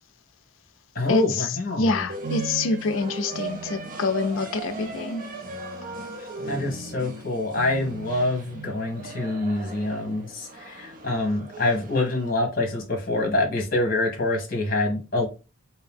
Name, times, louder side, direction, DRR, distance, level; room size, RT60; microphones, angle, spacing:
voice 1, 0.9-2.1 6.5-15.3, left 2 dB, 45° left, 1.1 m, -26 dB
voice 2, 1.8-5.3, left 3 dB, 75° left, 0.4 m, -26 dB
sound 1, 2.1-12.3, right 3 dB, 40° right, 0.6 m, -37 dB
2.8 x 2.7 x 3.5 m
head